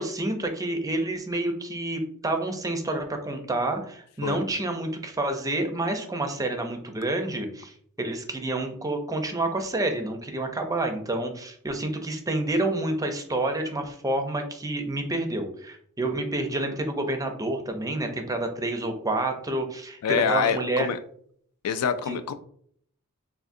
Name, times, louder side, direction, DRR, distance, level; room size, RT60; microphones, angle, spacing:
voice 1, 0.0-20.9 22.1-22.2, right 2 dB, 15° right, 5 dB, 0.5 m, -29 dB
voice 2, 20.0-21.0 21.6-22.3, left 7 dB, 75° left, 11 dB, 0.3 m, -25 dB
3.6 x 2.5 x 2.6 m, 0.62 s
head